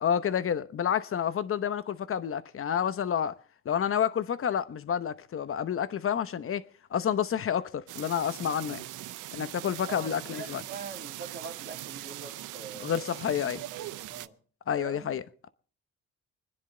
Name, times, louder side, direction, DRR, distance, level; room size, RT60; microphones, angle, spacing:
voice 1, 0.0-3.3 3.6-6.6 6.9-8.8 9.3-10.6 12.8-13.6 14.7-15.5, left 8 dB, 45° left, 0.9 m, -29 dB
sound 1, 7.9-14.3, right 15 dB, 85° right, 0.6 m, -41 dB
voice 2, 9.9-13.2 13.7-14.4 14.8-15.2, right 5 dB, 35° right, 2.6 m, -43 dB
25.5 x 10.0 x 3.8 m
cardioid pair, 90°, 30 cm